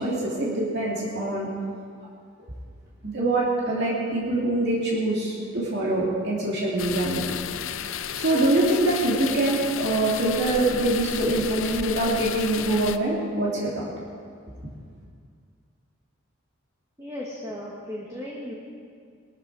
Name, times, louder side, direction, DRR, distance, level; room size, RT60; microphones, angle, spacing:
voice 1, 0.0-1.5 3.0-7.4 7.9-13.9, right 1 dB, 50° right, -5 dB, 2.6 m, -24 dB
sound 1, 6.8-13.0, left 9 dB, 70° left, 0.6 m, -33 dB
voice 2, 17.0-18.5, left 1 dB, 15° right, -4 dB, 1.6 m, -36 dB
19.5 x 13.0 x 4.8 m, 2.1 s
head